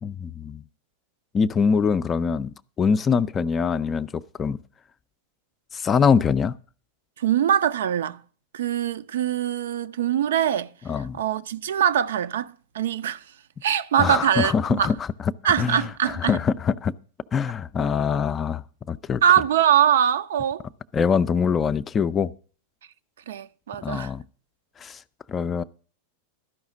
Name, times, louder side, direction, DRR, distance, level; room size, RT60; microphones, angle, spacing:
voice 1, 0.0-0.6 1.3-2.5 2.8-4.6 5.7-6.5 10.9-11.2 14.0-14.9 15.6-16.9 17.3-19.2 20.9-22.3 23.8-24.2 24.8-25.0 25.3-25.6, left 6 dB, 20° left, 0.4 m, -23 dB
voice 2, 7.2-8.2 8.5-10.7 11.1-13.2 13.6-14.9 15.4-16.4 19.2-20.6 23.3-24.1, right 10 dB, 60° right, 0.4 m, -22 dB
12.5 x 5.5 x 7.2 m
figure-of-eight pair, 90°, 0 cm